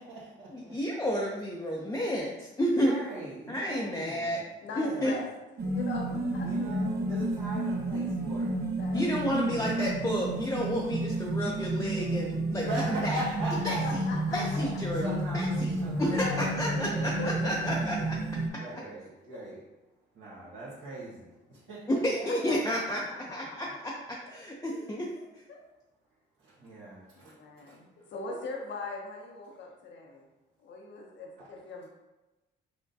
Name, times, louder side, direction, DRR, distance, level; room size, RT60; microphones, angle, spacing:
voice 1, 0.0-0.8 2.7-4.4 4.7-5.2 6.4-8.6 8.9-9.8 12.5-13.8 14.3-18.1 18.6-19.6 20.1-22.5 23.4-23.5 26.4-28.1 31.4-31.5, right 1 dB, 85° right, -9 dB, 1.3 m, -41 dB
voice 2, 0.5-2.9 3.5-4.4 4.8-5.1 8.9-12.7 13.0-13.2 13.6-13.7 14.3-15.7 16.0-16.2 16.6-17.1 17.4-17.9 21.9-23.0 23.3-23.4 24.3-25.1, equal, 15° left, -4 dB, 0.5 m, -30 dB
voice 3, 3.5-4.0 4.6-5.3 5.6-6.9 8.7-9.4 13.7-14.6 16.1-16.6 17.2-18.1 18.5-18.9 19.3-19.5 22.2-22.9 23.5-23.6 25.2-25.3 25.5-25.6 27.2-30.3 30.6-31.9, left 3 dB, 65° left, 0 dB, 0.7 m, -41 dB
sound 1, 5.6-18.5, right 1 dB, 55° right, 0.7 m, -31 dB
5.9 x 2.2 x 2.6 m, 1.0 s
cardioid pair, 90°, 20 cm